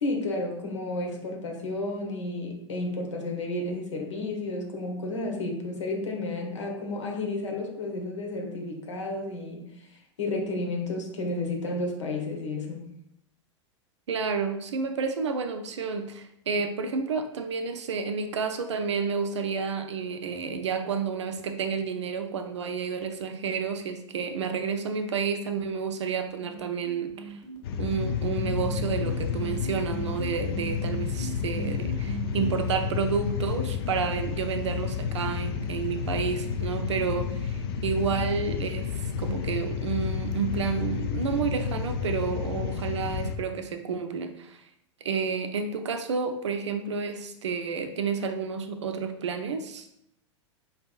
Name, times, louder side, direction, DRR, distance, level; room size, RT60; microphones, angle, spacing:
voice 1, 0.0-12.8, left 2 dB, 70° left, 2 dB, 1.1 m, -32 dB
voice 2, 14.1-27.4 27.8-44.6 45.0-49.9, right 5 dB, 65° right, 7 dB, 0.5 m, -30 dB
sound 1, 26.4-32.5, right 3 dB, 30° left, 1.6 m, -40 dB
sound 2, 27.6-43.4, left 7 dB, 50° left, 0.5 m, -31 dB
5.0 x 3.5 x 2.4 m, 0.77 s
figure-of-eight pair, 90°, 16 cm